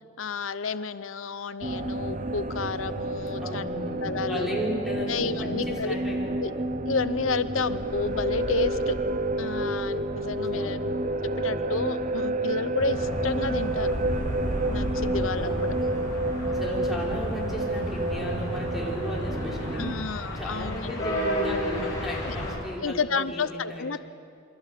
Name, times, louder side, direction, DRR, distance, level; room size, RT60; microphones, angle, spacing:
voice 1, 0.2-3.7 4.0-4.5 5.1-6.0 6.4-6.5 6.9-8.9 9.4-10.8 11.2-14.0 14.7-15.7 19.7-21.1 22.2-22.4 22.8-24.0, left 4 dB, 85° left, 13 dB, 0.8 m, -31 dB
sound 1, 1.6-19.9, right 2 dB, 40° right, 1.0 m, -29 dB
voice 2, 3.4-6.6 10.5-10.9 15.4-20.1 20.3-24.0, equal, ahead, -3 dB, 5.6 m, -35 dB
sound 2, 12.8-22.5, equal, 20° left, 7.9 m, -33 dB
28.0 x 23.5 x 8.3 m, 2.4 s
head